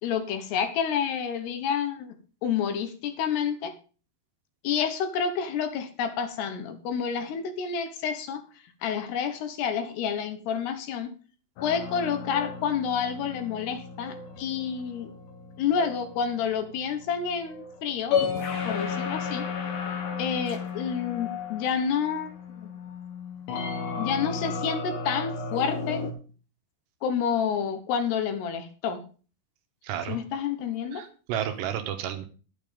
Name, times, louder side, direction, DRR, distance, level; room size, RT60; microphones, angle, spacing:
voice 1, 0.0-2.2 2.4-3.7 4.6-8.4 8.8-11.1 11.6-15.1 15.6-18.2 18.7-19.5 20.2-22.7 24.0-26.0 27.0-29.0 30.1-31.1, left 7 dB, 70° left, 8 dB, 3.1 m, -29 dB
sound 1, 11.6-26.1, left 6 dB, 85° left, 4.4 m, -34 dB
voice 2, 29.8-30.2 30.9-32.2, right 10 dB, 75° right, 7 dB, 3.1 m, -31 dB
11.0 x 8.7 x 5.1 m, 0.37 s
omnidirectional pair, 5.2 m